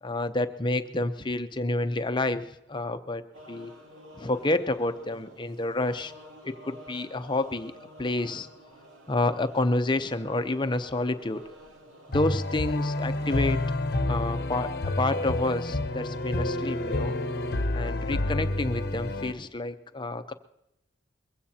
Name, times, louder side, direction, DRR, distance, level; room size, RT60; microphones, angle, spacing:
voice 1, 0.0-3.7 4.1-6.1 6.4-7.7 8.0-8.5 9.1-11.4 12.1-13.6 14.1-17.1 17.7-20.3, left 2 dB, 25° left, 10 dB, 0.6 m, -29 dB
sound 1, 3.3-13.6, left 1 dB, 85° right, 2.3 m, -50 dB
sound 2, 12.1-19.3, left 2 dB, 55° left, 0.8 m, -29 dB
22.0 x 16.0 x 2.8 m, 0.84 s
head